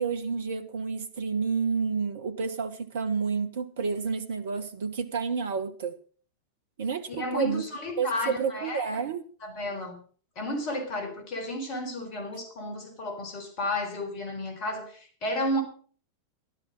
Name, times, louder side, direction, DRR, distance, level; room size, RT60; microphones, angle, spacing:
voice 1, 0.0-6.0 6.8-7.6 8.0-9.2, right 5 dB, 60° right, 1.0 m, -30 dB
voice 2, 7.1-9.0 9.4-10.0 10.4-15.6, left 1 dB, 40° left, 4.1 m, -32 dB
12.5 x 12.0 x 5.4 m
figure-of-eight pair, 90°, 0 cm